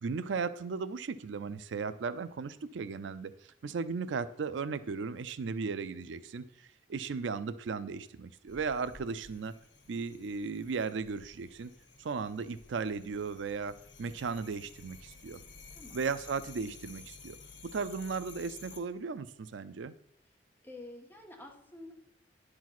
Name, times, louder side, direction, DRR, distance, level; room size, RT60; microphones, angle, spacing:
voice 1, 0.0-9.5 9.9-11.7 12.0-15.4 15.9-17.4 17.6-19.9, right 5 dB, 80° right, 14 dB, 0.4 m, -36 dB
sound 1, 8.5-18.8, left 4 dB, 90° left, 1.4 m, -53 dB
voice 2, 15.7-16.0 20.6-21.9, left 2 dB, 10° left, 0 dB, 1.5 m, -48 dB
10.5 x 4.8 x 5.9 m, 0.77 s
head